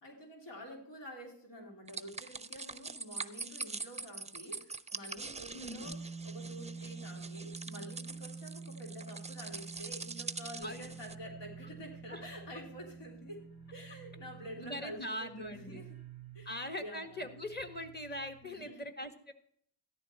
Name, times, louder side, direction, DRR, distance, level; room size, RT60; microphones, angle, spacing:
voice 1, 0.0-13.4 13.7-15.9 16.3-16.5 16.8-17.2 18.4-18.8, equal, 80° left, 0 dB, 3.0 m, -48 dB
sound 1, 1.9-11.1, right 4 dB, 15° right, 0.5 m, -44 dB
voice 2, 5.5-5.9 10.6-10.9 12.1-12.2 14.6-15.8 16.4-19.3, left 1 dB, 25° left, 6 dB, 1.7 m, -41 dB
sound 2, 5.8-14.9, right 4 dB, 5° left, 1.1 m, -48 dB
sound 3, 10.6-18.7, right 11 dB, 55° left, 2.5 m, -56 dB
14.0 x 10.5 x 4.4 m, 0.65 s
cardioid pair, 80°, 43 cm